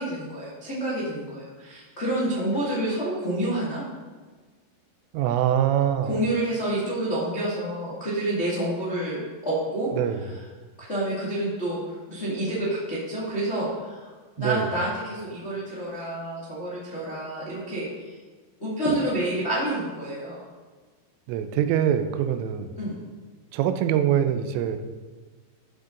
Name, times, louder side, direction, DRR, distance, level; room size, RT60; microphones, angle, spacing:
voice 1, 0.0-3.8 6.0-9.9 10.2-10.3 10.9-14.1 14.4-18.1 18.6-20.4 22.7-22.9, right 1 dB, 45° left, -8 dB, 0.8 m, -28 dB
voice 2, 5.1-6.1 9.9-10.2 14.4-14.7 21.3-22.8 23.5-24.8, right 10 dB, 85° right, 8 dB, 3.3 m, -24 dB
14.5 x 6.4 x 3.9 m, 1.4 s
omnidirectional pair, 5.6 m